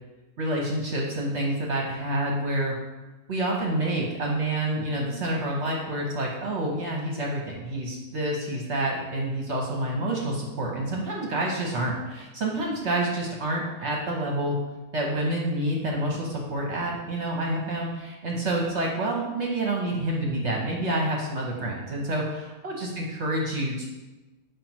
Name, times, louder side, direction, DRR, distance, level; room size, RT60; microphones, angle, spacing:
voice 1, 0.4-2.7 3.3-14.6 14.9-23.9, right 1 dB, 50° right, -1 dB, 1.0 m, -28 dB
7.4 x 5.2 x 3.0 m, 1.1 s
omnidirectional pair, 1.9 m